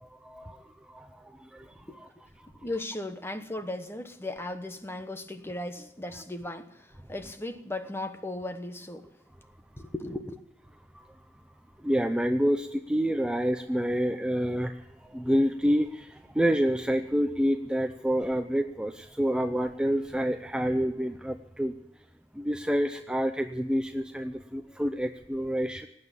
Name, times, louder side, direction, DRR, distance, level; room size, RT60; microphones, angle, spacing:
voice 1, 0.0-2.1 11.8-21.7 22.3-25.9, equal, 5° right, 0.6 m, -28 dB
voice 2, 2.6-9.1 9.8-10.4, left 1 dB, 15° left, 1.1 m, -36 dB
18.5 x 9.1 x 8.4 m
head